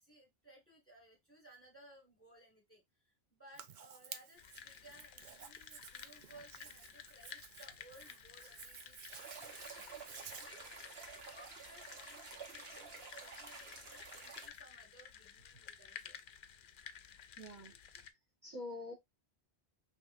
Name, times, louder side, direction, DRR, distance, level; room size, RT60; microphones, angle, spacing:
voice 1, 0.0-16.2, right 1 dB, 10° left, 1.7 m, -61 dB
Hands, 3.5-10.5, right 7 dB, 55° right, 0.7 m, -54 dB
sound 1, 4.4-18.1, left 8 dB, 60° left, 0.6 m, -54 dB
sound 2, 9.1-14.5, right 4 dB, 70° right, 1.4 m, -51 dB
voice 2, 17.4-18.1 18.4-18.9, left 2 dB, 20° right, 1.5 m, -46 dB
5.1 x 3.0 x 2.5 m
omnidirectional pair, 1.1 m